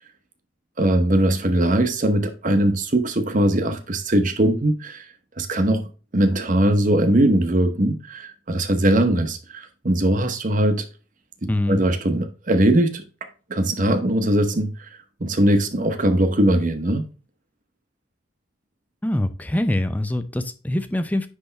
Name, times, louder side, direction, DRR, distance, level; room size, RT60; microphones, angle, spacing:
voice 1, 0.8-5.0 5.4-10.9 11.4-13.0 13.5-14.9 15.2-17.0, right 1 dB, 40° right, 0.9 m, -20 dB
voice 2, 11.5-11.8 19.0-21.3, left 1 dB, 10° left, 0.5 m, -24 dB
9.7 x 3.4 x 3.4 m
head